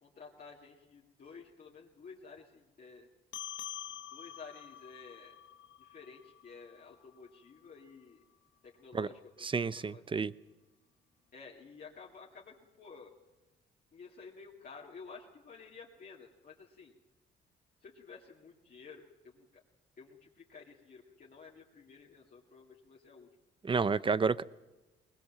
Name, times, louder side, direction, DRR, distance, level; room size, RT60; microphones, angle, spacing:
voice 1, 0.0-3.1 4.1-5.3 5.8-8.2 8.6-9.5 9.7-10.0 11.3-13.1 13.9-16.9 17.8-19.0 19.3-19.5 20.0-23.3, left 5 dB, 45° left, -3 dB, 2.5 m, -52 dB
sound 1, 3.3-8.1, left 11 dB, 75° left, 0.9 m, -47 dB
voice 2, 9.4-10.3 23.6-24.4, right 5 dB, 25° right, 18 dB, 0.7 m, -30 dB
21.0 x 20.5 x 7.5 m, 1.1 s
cardioid pair, 90°, 20 cm